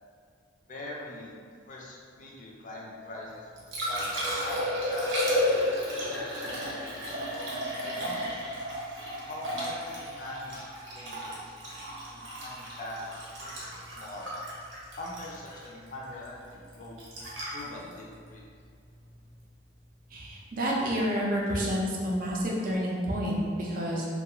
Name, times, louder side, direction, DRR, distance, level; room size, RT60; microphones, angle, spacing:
voice 1, 0.7-1.4 1.7-4.6 4.9-5.1 5.9-7.5 7.8-8.4 9.3-10.7 10.9-13.0 13.4-14.4 15.0-16.9 17.5-18.4, left 1 dB, 40° left, -3 dB, 0.4 m, -43 dB
Liquid, 3.3-19.4 22.2-22.3, left 1 dB, 80° right, 0.7 m, -33 dB
voice 2, 20.1-24.1, equal, 45° right, -3 dB, 0.5 m, -29 dB
2.4 x 2.3 x 2.9 m, 2.1 s
head